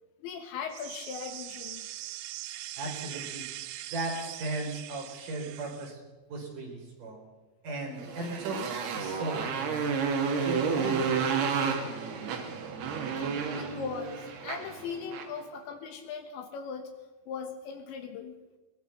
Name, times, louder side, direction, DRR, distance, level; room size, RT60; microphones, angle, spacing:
voice 1, 0.2-1.9 13.3-16.9 17.3-18.4, left 6 dB, 70° left, 7 dB, 3.3 m, -39 dB
sound 1, 0.7-5.9, right 14 dB, 85° right, 2.4 m, -41 dB
voice 2, 2.8-3.4 3.9-6.0 6.3-7.2 7.6-8.6 8.9-10.0 10.4-12.2, right 2 dB, 40° right, 0 dB, 5.4 m, -37 dB
Motorcycle, 8.0-15.4, right 6 dB, 60° right, 3.8 m, -31 dB
22.5 x 20.5 x 5.9 m, 1.2 s
omnidirectional pair, 5.9 m